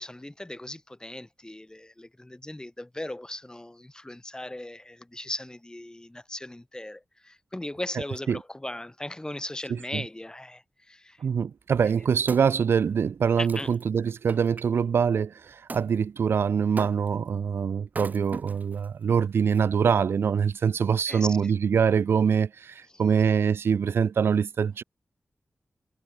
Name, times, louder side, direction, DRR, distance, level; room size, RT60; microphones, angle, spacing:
voice 1, 0.0-11.2 13.4-13.7 21.1-21.5 22.9-23.0, left 1 dB, 20° left, 3.1 m, -38 dB
voice 2, 9.7-10.0 11.2-24.8, right 6 dB, 80° right, 0.6 m, -24 dB
Wood, 11.9-14.7 15.7-15.9 16.8-17.3 17.9-18.9 19.5-19.6, right 3 dB, 45° right, 6.3 m, -41 dB
cardioid pair, 45°, 4 cm